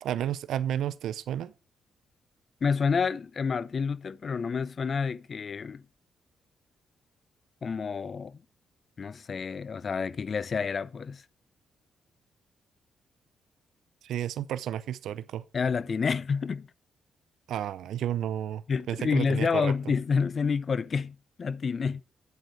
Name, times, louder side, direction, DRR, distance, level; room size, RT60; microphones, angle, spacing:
voice 1, 0.0-1.5 14.0-15.4 17.5-19.9, right 11 dB, 80° right, 0.5 m, -32 dB
voice 2, 2.6-5.8 7.6-8.4 9.0-11.2 15.5-16.7 18.7-22.0, left 5 dB, 45° left, 0.5 m, -29 dB
8.3 x 7.9 x 4.6 m
cardioid pair, 80°, 0 cm